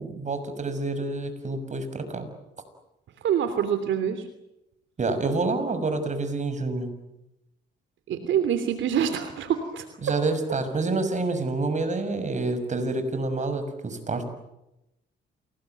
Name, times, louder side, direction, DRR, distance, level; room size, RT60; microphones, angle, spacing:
voice 1, 0.0-2.3 5.0-6.9 10.0-14.2, right 3 dB, 35° right, 9 dB, 6.3 m, -28 dB
voice 2, 3.2-4.3 8.1-9.8, right 8 dB, 75° right, 8 dB, 3.0 m, -25 dB
28.5 x 20.5 x 9.3 m, 0.90 s
cardioid pair, 90°, 20 cm